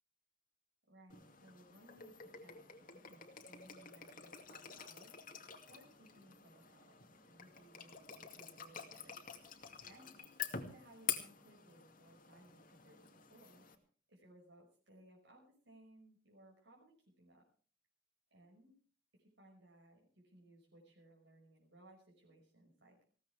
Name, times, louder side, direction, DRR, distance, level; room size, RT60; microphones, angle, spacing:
voice 1, 0.9-5.3 5.6-13.8 14.1-17.5 18.3-18.7 19.1-23.1, right 1 dB, 75° right, -2 dB, 5.8 m, -63 dB
sound 1, 1.1-13.7, left 8 dB, 45° left, 2.3 m, -48 dB
20.5 x 17.0 x 3.5 m, 0.43 s
head